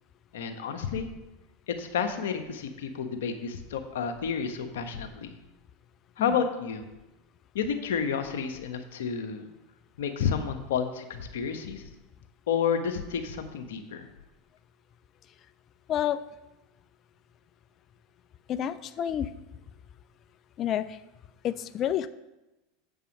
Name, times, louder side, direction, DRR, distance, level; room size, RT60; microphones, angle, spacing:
voice 1, 0.3-1.1 1.7-5.3 6.2-6.9 7.5-9.5 10.0-11.8 12.5-14.1, left 7 dB, 75° left, 6 dB, 1.1 m, -30 dB
voice 2, 18.5-19.3 20.6-20.8 21.4-22.1, left 10 dB, 40° left, 12 dB, 0.5 m, -28 dB
8.0 x 5.5 x 6.4 m, 0.99 s
hypercardioid pair, 90°, 0 cm